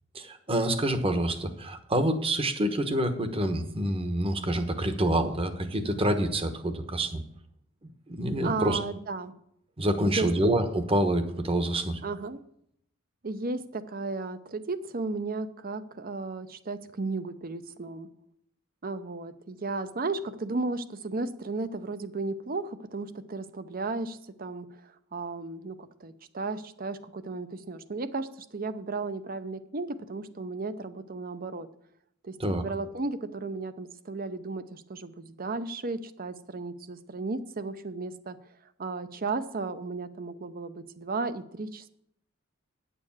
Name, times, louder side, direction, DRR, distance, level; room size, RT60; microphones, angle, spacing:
voice 1, 0.1-7.2 7.8-8.8 9.8-12.0 32.4-32.6, right 1 dB, 30° right, 9 dB, 1.1 m, -27 dB
voice 2, 8.4-9.3 10.0-10.3 12.0-12.4 13.2-18.1 18.8-31.7 32.2-38.4 38.8-41.9, right 3 dB, 45° right, 12 dB, 0.7 m, -34 dB
9.7 x 7.0 x 7.2 m, 0.74 s
head